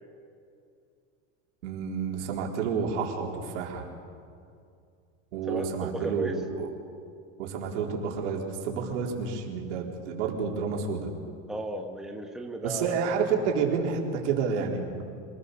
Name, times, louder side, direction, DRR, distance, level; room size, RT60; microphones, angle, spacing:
voice 1, 1.6-3.9 5.3-6.7 7.4-11.1 12.6-15.0, right 5 dB, 85° right, 0 dB, 4.3 m, -30 dB
voice 2, 5.5-6.4 11.5-13.1, right 1 dB, ahead, 2 dB, 1.4 m, -35 dB
27.0 x 20.0 x 6.8 m, 2.4 s
supercardioid pair, 150°, 34 cm